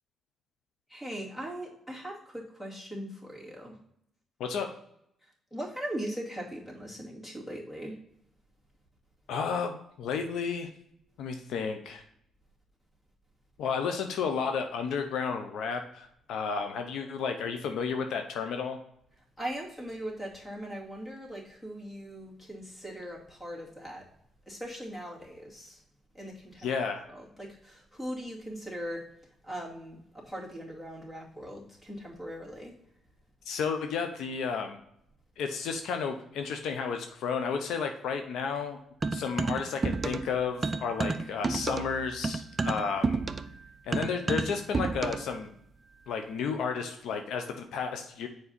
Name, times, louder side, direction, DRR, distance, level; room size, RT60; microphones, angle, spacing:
voice 1, 0.9-3.8 5.5-8.0 19.4-24.1 24.5-25.8 26.1-26.7 27.1-29.0 29.4-32.7, equal, 20° left, -3 dB, 2.4 m, -40 dB
voice 2, 4.4-4.8 9.3-10.7 11.2-12.0 13.6-18.8 26.6-27.1 33.4-34.8 35.4-38.8 39.1-43.2 43.8-45.5 46.1-48.3, left 5 dB, 80° left, 6 dB, 0.7 m, -32 dB
sound 1, 39.0-40.3 40.6-45.3, right 3 dB, 30° right, 0.5 m, -30 dB
7.2 x 4.8 x 4.1 m, 0.75 s
cardioid pair, 90°, 0 cm